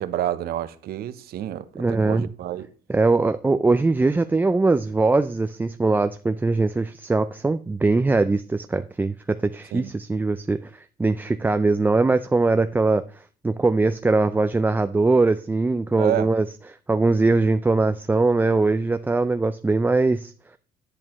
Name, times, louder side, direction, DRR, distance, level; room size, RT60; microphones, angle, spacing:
voice 1, 0.0-1.6 2.0-2.7 9.7-9.9 16.0-16.3, right 12 dB, 65° right, 0.8 m, -28 dB
voice 2, 1.8-2.3 2.9-13.0 13.4-16.5 16.9-20.3, right 3 dB, 10° right, 0.4 m, -21 dB
11.0 x 8.4 x 3.0 m
cardioid pair, 110°, 17 cm